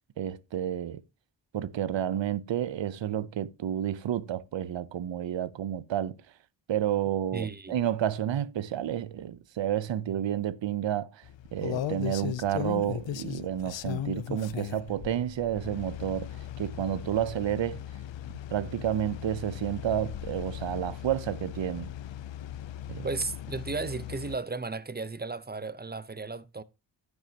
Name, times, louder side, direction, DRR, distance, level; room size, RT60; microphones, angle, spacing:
voice 1, 0.2-1.0 1.5-6.1 6.7-11.2 11.5-16.3 16.6-17.8 18.5-21.9 22.9-23.1, right 10 dB, 80° right, 0.7 m, -30 dB
voice 2, 7.3-7.8 23.0-26.6, right 3 dB, 20° right, 0.7 m, -34 dB
sound 1, 11.2-24.4, left 11 dB, 80° left, 0.6 m, -38 dB
10.5 x 9.7 x 2.8 m
cardioid pair, 55°, 44 cm